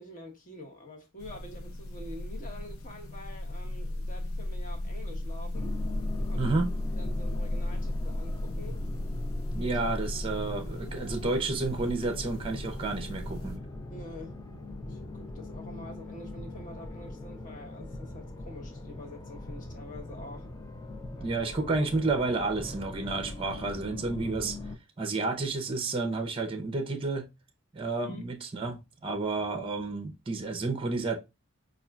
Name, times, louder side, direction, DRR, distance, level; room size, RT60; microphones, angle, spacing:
voice 1, 0.0-5.8 6.2-6.6 6.9-8.8 9.6-9.8 13.9-14.4 14.8-20.5 21.2-21.3 28.0-28.3, left 1 dB, 40° left, 1.0 m, -46 dB
sound 1, 1.2-13.6, left 1 dB, 70° left, 0.6 m, -35 dB
sound 2, 5.5-24.7, left 2 dB, 15° left, 0.5 m, -41 dB
voice 2, 6.4-6.7 9.5-13.6 21.2-24.6 25.0-27.3 27.7-31.2, right 3 dB, 25° right, 0.6 m, -31 dB
5.6 x 2.4 x 2.3 m
head